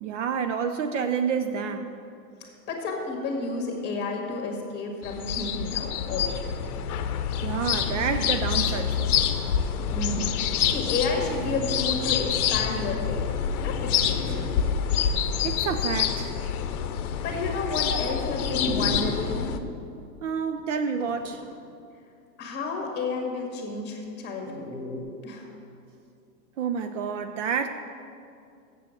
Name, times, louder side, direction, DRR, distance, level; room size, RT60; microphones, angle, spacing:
voice 1, 0.0-1.9 7.4-9.1 15.4-16.3 17.9-18.1 20.2-21.4 26.6-27.7, right 6 dB, 50° right, 7 dB, 0.5 m, -29 dB
voice 2, 2.7-6.4 9.9-13.3 13.6-14.4 17.2-19.5 22.4-24.7 25.2-25.5, left 3 dB, 20° left, 1 dB, 1.8 m, -31 dB
sound 1, 5.0-19.6, left 8 dB, 60° left, 0.8 m, -27 dB
Dog, 11.0-11.1 11.4-11.7 12.3-12.4 13.1-13.2 14.0-14.5 15.1-15.2 18.5-19.5 21.0-21.5 24.4-25.0, equal, 10° right, 1.1 m, -35 dB
7.5 x 7.3 x 7.2 m, 2.5 s
hypercardioid pair, 130°, 49 cm